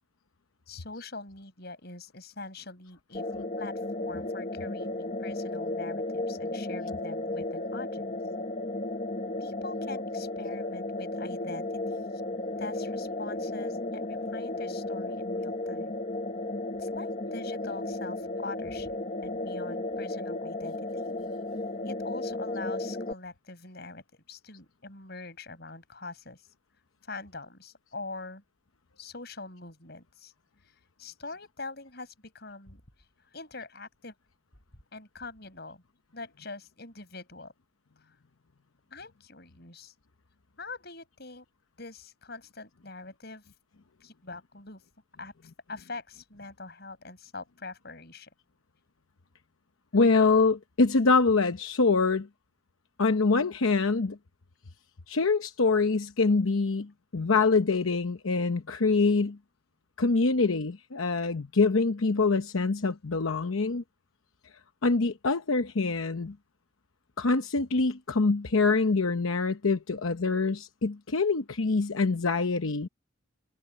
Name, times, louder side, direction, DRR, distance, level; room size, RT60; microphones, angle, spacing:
voice 1, 0.7-3.3 3.6-8.2 9.4-12.2 12.6-16.0 16.8-21.2 21.8-26.5 27.0-28.4 29.0-30.3 30.6-32.8 33.3-34.1 34.9-35.8 36.1-37.5 38.0-38.1 38.9-39.9 40.6-41.5 41.8-43.4 44.0-44.8 45.2-48.3, left 3 dB, 50° left, 7.8 m, -43 dB
sound 1, 3.1-23.1, left 2 dB, 35° left, 1.0 m, -34 dB
voice 2, 49.9-52.3 53.0-54.2 55.1-59.4 60.0-63.8 64.8-66.3 67.2-72.9, left 3 dB, 85° left, 0.9 m, -25 dB
head